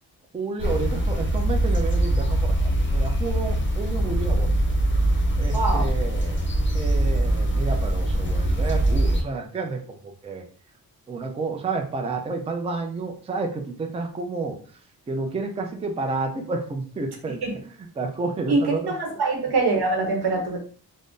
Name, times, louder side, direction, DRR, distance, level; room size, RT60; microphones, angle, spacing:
voice 1, 0.3-4.5 5.4-6.4 6.7-10.4 11.1-14.6 15.1-19.0, right 3 dB, 15° right, 4 dB, 0.3 m, -30 dB
sound 1, 0.6-9.2, right 1 dB, 30° left, 0.5 m, -22 dB
voice 2, 5.5-5.9 17.4-17.5 18.5-18.6 18.9-20.6, right 3 dB, 90° right, 4 dB, 0.8 m, -23 dB
3.5 x 2.0 x 2.5 m, 0.43 s
wide cardioid pair, 150°, 38 cm